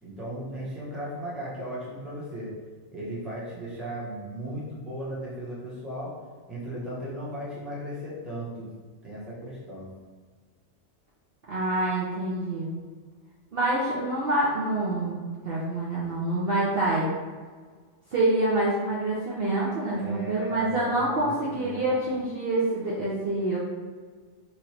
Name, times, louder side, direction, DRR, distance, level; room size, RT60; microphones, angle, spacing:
voice 1, 0.0-2.5 2.9-6.1 6.5-8.7 9.0-9.9 19.9-21.9, equal, ahead, -8 dB, 0.9 m, -36 dB
voice 2, 11.5-12.7 13.5-15.2 15.4-17.1 18.1-23.6, right 2 dB, 55° right, -7 dB, 0.8 m, -26 dB
3.2 x 2.5 x 4.3 m, 1.5 s
omnidirectional pair, 1.4 m